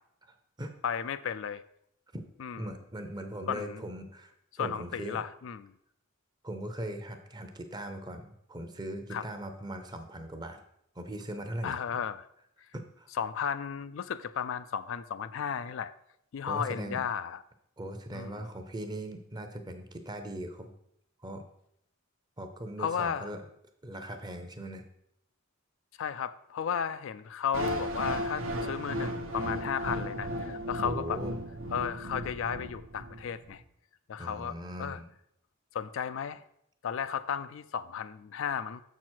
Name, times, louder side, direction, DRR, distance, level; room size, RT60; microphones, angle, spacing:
voice 1, 0.8-1.6 2.4-2.7 3.5-3.9 4.5-5.7 9.1-9.2 11.6-12.3 13.1-15.9 16.3-17.4 18.1-18.5 22.8-23.3 26.0-31.2 31.7-33.6 34.1-35.0 35.7-36.4 36.8-38.8, left 7 dB, 60° left, 13 dB, 0.3 m, -34 dB
voice 2, 2.6-4.3 4.6-5.2 6.4-10.6 11.0-11.8 12.7-13.1 16.4-17.0 17.8-20.7 21.2-21.4 22.4-23.4 23.8-24.8 30.8-31.3 34.2-35.1, right 1 dB, 20° right, 6 dB, 0.7 m, -39 dB
sound 1, 27.5-33.5, equal, 65° right, 0.9 m, -35 dB
7.0 x 6.1 x 4.4 m, 0.75 s
head